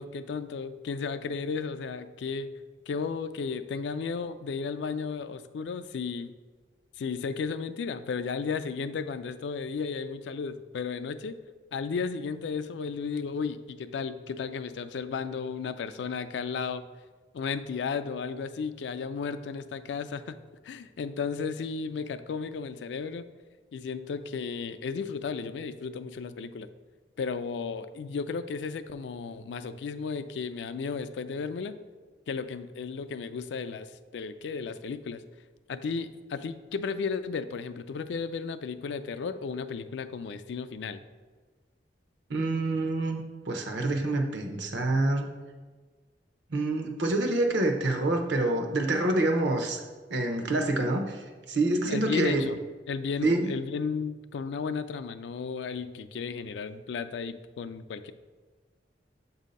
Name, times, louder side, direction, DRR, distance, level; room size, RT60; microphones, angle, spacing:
voice 1, 0.0-2.5 2.9-6.3 7.0-11.4 11.7-16.8 17.3-20.4 20.6-23.2 23.7-26.7 27.2-31.8 32.3-35.2 35.7-41.0 51.9-52.6 52.9-58.1, left 5 dB, 75° left, 11 dB, 0.3 m, -34 dB
voice 2, 42.3-43.2 43.5-45.3 46.5-49.8 50.1-51.2 51.5-52.4 53.2-53.5, right 2 dB, 75° right, 4 dB, 0.7 m, -26 dB
7.4 x 2.7 x 5.2 m, 1.4 s
head